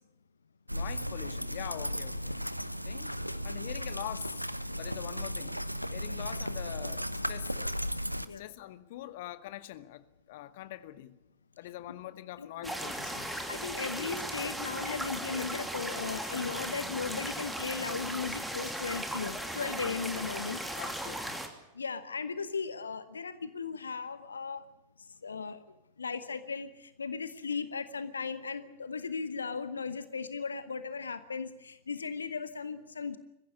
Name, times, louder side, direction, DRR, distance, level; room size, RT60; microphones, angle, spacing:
voice 1, 0.7-2.4 2.8-3.1 3.4-4.4 4.8-5.6 5.9-7.7 8.4-11.2 11.6-13.5 19.8-20.0 20.7-21.4, left 14 dB, 50° left, 1.1 m, -44 dB
sound 1, 0.7-8.3, equal, 90° right, 0.8 m, -35 dB
voice 2, 12.4-12.7 13.5-20.6 21.8-24.6 25.2-25.6 26.0-33.2, left 5 dB, 75° left, 1.0 m, -37 dB
sound 2, 12.6-21.5, right 1 dB, 5° right, 2.7 m, -37 dB
22.0 x 15.5 x 9.5 m
figure-of-eight pair, 90°, 0 cm